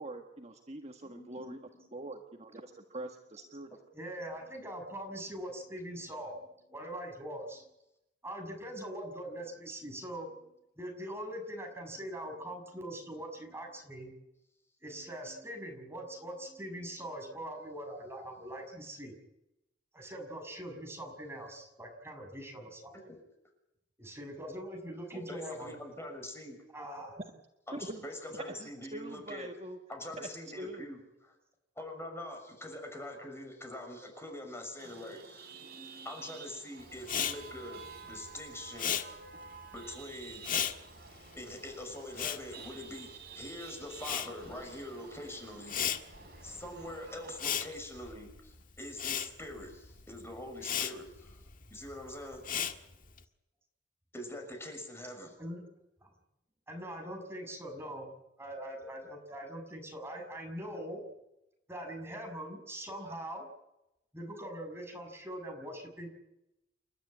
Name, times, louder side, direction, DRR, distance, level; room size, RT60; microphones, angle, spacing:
voice 1, 0.0-1.6 1.9-3.7 27.7-28.0 28.6-29.8 30.2-30.3 30.6-30.9, right 1 dB, 35° right, 4 dB, 1.6 m, -43 dB
voice 2, 1.0-1.9 2.6-2.7 3.9-7.7 8.2-14.2 14.8-19.2 19.9-23.1 24.0-25.8 26.7-27.2 35.6-36.1 55.4-55.6 56.0-56.1 56.7-58.1 58.4-61.0 61.7-63.4 64.1-66.1, right 1 dB, 15° right, 3 dB, 6.3 m, -42 dB
voice 3, 25.1-26.6 27.7-29.5 29.9-31.3 31.8-35.5 36.0-39.2 39.7-40.4 41.4-45.8 46.4-51.4 51.7-52.4 54.1-55.3, left 1 dB, 15° left, 4 dB, 6.3 m, -44 dB
Chatter / Vehicle horn car horn honking / Traffic noise roadway noise, 34.8-47.4, right 5 dB, 60° right, 4.9 m, -51 dB
Respiratory sounds, 37.0-43.5 43.7-53.2, left 9 dB, 50° left, 1.7 m, -37 dB
29.5 x 12.5 x 9.7 m, 0.89 s
head